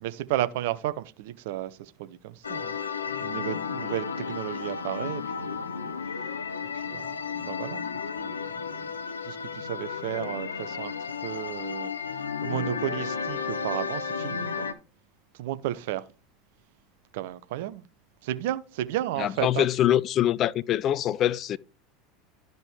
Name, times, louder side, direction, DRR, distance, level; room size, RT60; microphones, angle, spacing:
voice 1, 0.0-2.8 3.2-5.2 5.8-5.9 6.7-7.8 8.2-8.9 9.2-11.9 12.4-14.7 15.4-16.1 17.1-17.8 18.2-19.7, right 14 dB, 60° right, 0.6 m, -33 dB
sound 1, 2.4-14.7, left 6 dB, 80° left, 0.6 m, -33 dB
voice 2, 19.2-21.6, left 11 dB, 40° left, 0.3 m, -24 dB
12.5 x 5.2 x 3.2 m
figure-of-eight pair, 80°, 0 cm